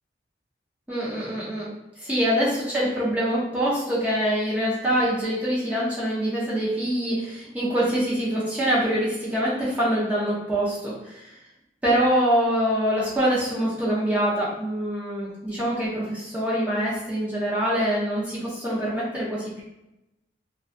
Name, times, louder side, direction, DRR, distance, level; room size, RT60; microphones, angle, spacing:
voice 1, 0.9-1.7 2.0-11.3 11.8-19.6, equal, 10° right, -8 dB, 0.6 m, -25 dB
2.6 x 2.2 x 2.5 m, 0.91 s
head